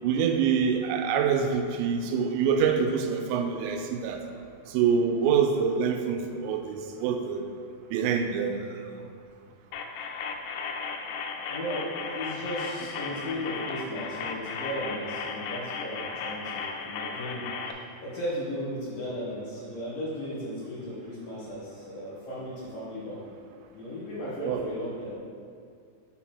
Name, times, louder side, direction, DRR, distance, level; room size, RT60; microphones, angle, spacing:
voice 1, 0.0-4.2 4.7-7.5 7.9-8.8 24.4-24.7, right 6 dB, 85° right, 5 dB, 2.8 m, -26 dB
sound 1, 9.7-17.7, left 5 dB, 80° left, 2.6 m, -35 dB
voice 2, 11.5-23.3 23.7-25.2, equal, 60° left, -9 dB, 2.8 m, -36 dB
6.5 x 4.2 x 5.9 m, 2.2 s
omnidirectional pair, 5.2 m